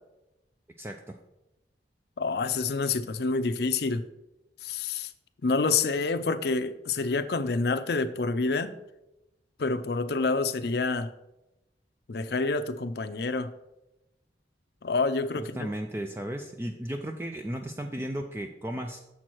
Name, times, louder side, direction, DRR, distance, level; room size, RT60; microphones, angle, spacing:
voice 1, 0.8-1.2 15.4-19.0, right 1 dB, 15° right, 4 dB, 0.3 m, -35 dB
voice 2, 2.2-4.1 4.6-5.1 5.4-8.7 9.6-11.1 12.1-13.5 14.8-15.7, left 4 dB, 60° left, 11 dB, 0.5 m, -28 dB
7.2 x 4.5 x 6.1 m, 0.93 s
head